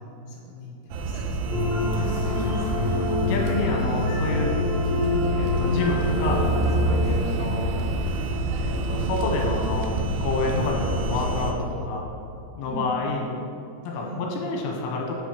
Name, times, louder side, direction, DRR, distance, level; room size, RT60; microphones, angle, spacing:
voice 1, 0.3-1.3 2.0-2.8 7.0-7.3 12.6-12.9 13.9-14.2, equal, 60° left, -5 dB, 1.6 m, -39 dB
sound 1, 0.9-11.5, right 1 dB, 80° right, 3.0 m, -28 dB
sound 2, 1.5-6.9, left 1 dB, 45° right, 1.8 m, -25 dB
voice 2, 3.2-4.5 5.4-6.4 6.7-8.2 8.6-9.9 10.2-12.1 12.5-13.2 13.8-15.2, left 3 dB, 80° left, 0 dB, 3.3 m, -28 dB
9.0 x 6.0 x 4.8 m, 2.6 s
omnidirectional pair, 5.7 m